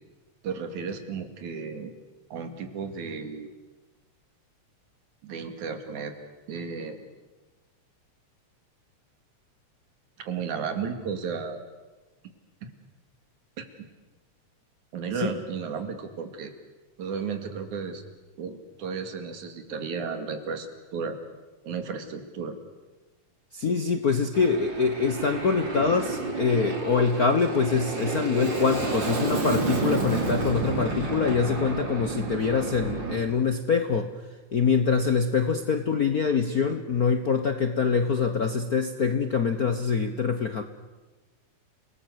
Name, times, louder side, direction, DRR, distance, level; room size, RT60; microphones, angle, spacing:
voice 1, 0.4-1.9 2.3-3.5 5.2-6.1 6.5-7.1 10.2-11.6 12.6-12.7 13.6-13.7 14.9-16.5 17.0-18.0 18.4-20.7 20.9-21.2 21.6-22.6, right 5 dB, 90° right, 7 dB, 3.7 m, -33 dB
voice 2, 23.5-40.6, left 5 dB, 60° left, 8 dB, 0.9 m, -25 dB
Aircraft, 24.3-33.2, right 3 dB, 40° right, 4.2 m, -30 dB
29.5 x 19.5 x 8.1 m, 1.2 s
omnidirectional pair, 3.3 m